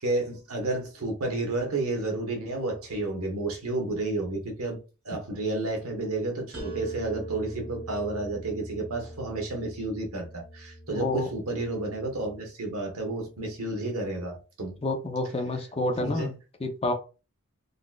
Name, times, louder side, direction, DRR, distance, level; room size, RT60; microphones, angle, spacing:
voice 1, 0.0-4.8 5.0-14.8 16.0-16.3, right 2 dB, 75° right, 1.0 m, -31 dB
sound 1, 6.5-12.3, right 1 dB, 50° right, 1.2 m, -42 dB
voice 2, 10.9-11.3 14.8-16.3 16.6-16.9, left 2 dB, 25° left, 0.5 m, -28 dB
3.8 x 2.4 x 2.3 m
head